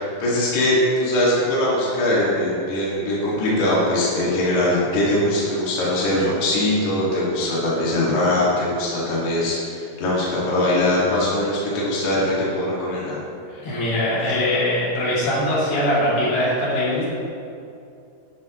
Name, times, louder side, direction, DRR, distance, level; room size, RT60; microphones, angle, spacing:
voice 1, 0.0-13.2 13.5-13.6, left 1 dB, 60° left, -7 dB, 3.5 m, -21 dB
voice 2, 13.6-17.1, left 1 dB, 90° left, -8 dB, 4.8 m, -21 dB
12.0 x 11.0 x 3.1 m, 2.6 s
omnidirectional pair, 4.0 m